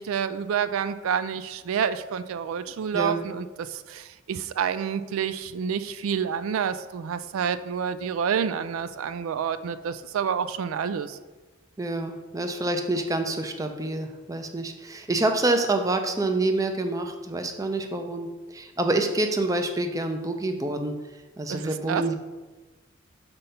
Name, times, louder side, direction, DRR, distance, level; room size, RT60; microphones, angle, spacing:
voice 1, 0.0-11.2 21.5-22.0, right 7 dB, 85° right, 13 dB, 0.3 m, -28 dB
voice 2, 11.8-20.9 21.4-22.1, right 2 dB, 15° right, 5 dB, 0.4 m, -27 dB
5.2 x 4.1 x 5.7 m, 1.2 s
head